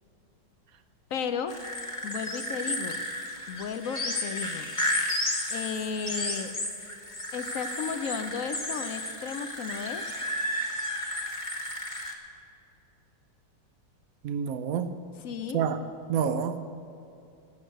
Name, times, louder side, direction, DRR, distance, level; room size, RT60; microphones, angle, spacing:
voice 1, 1.1-1.6 2.0-3.0 3.5-4.7 5.5-6.5 7.3-10.0 15.2-15.7, left 6 dB, 65° left, 9 dB, 0.8 m, -34 dB
sound 1, 1.5-12.1, left 1 dB, 20° left, 1.1 m, -33 dB
voice 2, 14.2-14.9 15.5-15.8 16.1-16.7, right 7 dB, 65° right, 10 dB, 0.9 m, -28 dB
12.5 x 8.0 x 7.9 m, 2.7 s
omnidirectional pair, 2.0 m